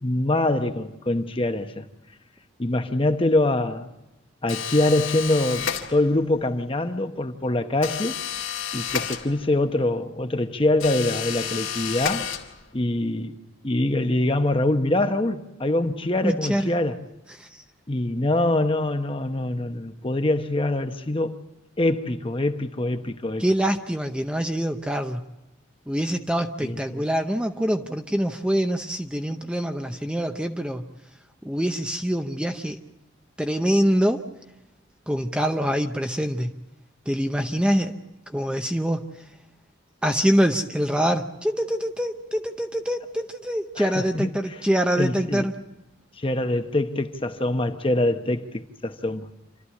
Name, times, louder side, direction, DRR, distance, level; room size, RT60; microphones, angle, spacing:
voice 1, 0.0-1.9 2.6-3.9 4.4-8.2 8.7-12.3 12.7-13.4 13.6-17.0 17.9-21.4 21.8-23.4 26.6-27.0 43.8-44.3 45.0-45.5 46.2-49.3, left 1 dB, 25° left, 0.9 m, -24 dB
sound 1, 4.5-6.3 7.8-9.7 10.8-12.8, left 8 dB, 85° left, 2.2 m, -31 dB
voice 2, 16.2-16.7 17.4-17.6 18.1-18.3 23.4-25.2 25.9-30.8 31.4-32.8 33.4-34.2 35.1-36.5 37.1-38.0 38.3-39.0 40.0-45.6, equal, 5° right, 0.7 m, -25 dB
27.5 x 13.0 x 8.3 m
head